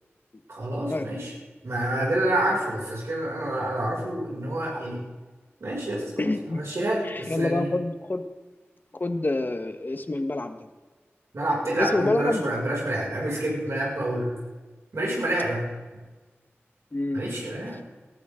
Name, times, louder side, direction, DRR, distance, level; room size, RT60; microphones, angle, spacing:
voice 1, 0.5-1.3 1.6-5.0 5.6-6.1 6.5-7.7 11.3-14.3 14.9-15.7 17.1-17.8, right 1 dB, 80° right, -4 dB, 6.1 m, -28 dB
voice 2, 6.2-6.6 7.0-8.2 9.0-10.7 11.8-12.5 16.9-17.3, left 2 dB, 45° left, 8 dB, 1.4 m, -27 dB
19.0 x 13.5 x 3.8 m, 1.3 s
wide cardioid pair, 55°, 5 cm